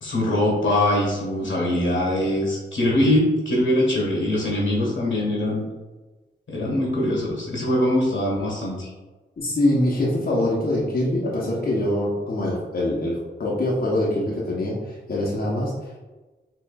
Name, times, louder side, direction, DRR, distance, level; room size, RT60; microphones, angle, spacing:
voice 1, 0.0-5.6 6.5-8.9, left 1 dB, 85° left, -3 dB, 1.4 m, -22 dB
voice 2, 9.4-16.0, left 1 dB, 50° left, -5 dB, 0.9 m, -24 dB
4.6 x 3.0 x 2.3 m, 1.2 s
cardioid pair, 65°, 19 cm